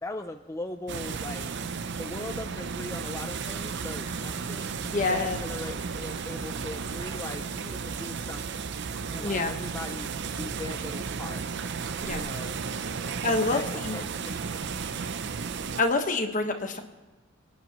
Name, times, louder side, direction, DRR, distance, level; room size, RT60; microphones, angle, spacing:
voice 1, 0.0-1.5 2.0-4.7 5.1-8.6 9.1-10.1 10.3-11.4 12.1-12.6 13.0-14.6 15.0-15.2, left 2 dB, 15° left, 5 dB, 0.4 m, -40 dB
sound 1, 0.9-15.8, right 5 dB, 55° right, 0.6 m, -34 dB
sound 2, 2.1-7.2, right 2 dB, 85° right, 3.9 m, -47 dB
voice 2, 4.9-5.4 9.2-9.5 12.0-12.2 13.2-14.0 15.8-16.8, left 3 dB, 40° left, 5 dB, 1.3 m, -27 dB
26.0 x 9.8 x 3.0 m, 1.2 s
head